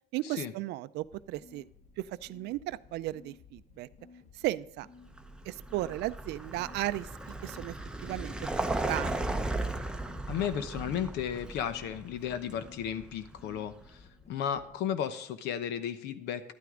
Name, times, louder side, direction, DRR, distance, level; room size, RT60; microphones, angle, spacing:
voice 1, 0.1-1.6 2.0-3.9 4.4-4.9 5.5-7.1 7.4-7.7 8.0-9.4, right 16 dB, 85° right, 16 dB, 0.4 m, -35 dB
sound 1, 1.0-14.7, left 5 dB, 40° left, 1.2 m, -57 dB
Vehicle, 5.1-13.9, right 2 dB, 5° right, 0.7 m, -36 dB
voice 2, 10.3-16.5, left 9 dB, 85° left, 11 dB, 0.9 m, -34 dB
11.5 x 9.2 x 3.7 m, 0.73 s
cardioid pair, 110°, 17 cm